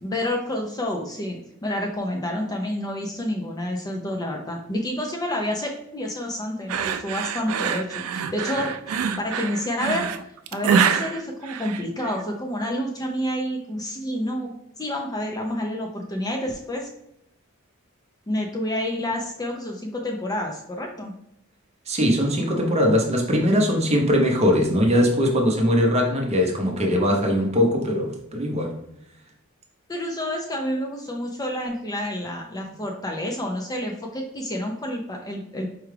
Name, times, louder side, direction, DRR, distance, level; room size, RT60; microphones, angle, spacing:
voice 1, 0.0-10.1 10.5-14.5 14.8-16.9 18.3-21.1 29.9-35.7, left 1 dB, 15° left, 1 dB, 0.4 m, -29 dB
sound 1, 6.7-12.2, right 7 dB, 80° right, 0.3 m, -25 dB
voice 2, 21.9-28.8, equal, 30° right, 1 dB, 0.7 m, -21 dB
4.7 x 2.3 x 3.2 m, 0.79 s
head